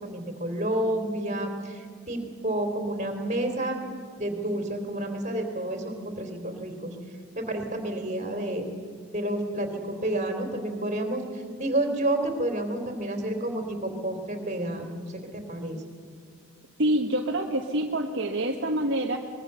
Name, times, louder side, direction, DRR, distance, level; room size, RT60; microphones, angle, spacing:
voice 1, 0.0-3.8 4.2-7.0 7.4-8.7 9.1-15.8, right 1 dB, 35° right, 4 dB, 3.5 m, -30 dB
voice 2, 16.8-19.2, right 1 dB, 55° right, 1 dB, 1.4 m, -26 dB
24.5 x 21.5 x 6.8 m, 2.3 s
head